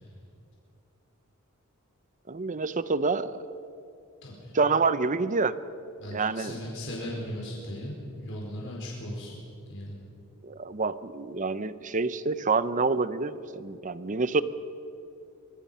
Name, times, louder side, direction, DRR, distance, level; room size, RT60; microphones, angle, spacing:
voice 1, 2.3-3.5 4.5-5.5 6.1-6.6 10.4-14.4, right 4 dB, 35° right, 14 dB, 0.7 m, -27 dB
voice 2, 4.2-4.5 6.0-9.4 9.7-10.0, left 1 dB, 60° left, -4 dB, 4.6 m, -37 dB
24.0 x 22.5 x 5.7 m, 2.6 s
head